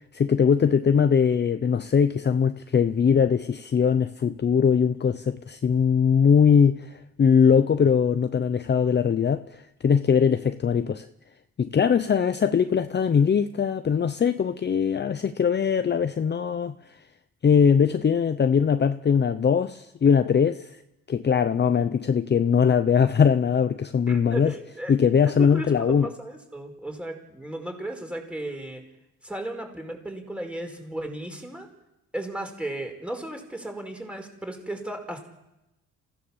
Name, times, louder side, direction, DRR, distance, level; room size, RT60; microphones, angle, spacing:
voice 1, 0.1-11.1 11.6-16.7 17.4-20.7 21.1-24.5 24.9-26.1, left 7 dB, 35° left, 0.8 m, -21 dB
voice 2, 24.1-24.9 25.2-28.8 29.2-31.7 32.1-35.3, right 1 dB, 5° right, 4.9 m, -35 dB
28.0 x 16.0 x 7.3 m
cardioid pair, 90°, 30 cm